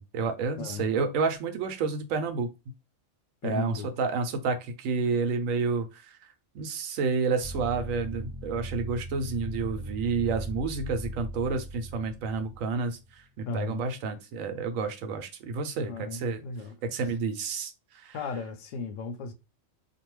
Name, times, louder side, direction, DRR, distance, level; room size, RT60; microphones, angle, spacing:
voice 1, 0.0-2.5 3.4-6.2 6.5-16.4 16.9-18.2, right 4 dB, 85° right, 1.0 m, -30 dB
voice 2, 0.6-0.9 3.4-3.9 13.5-13.8 15.9-16.9 18.1-19.3, left 4 dB, 75° left, 0.9 m, -35 dB
sound 1, 7.4-13.2, right 1 dB, 50° right, 0.7 m, -39 dB
2.6 x 2.3 x 3.0 m
omnidirectional pair, 1.3 m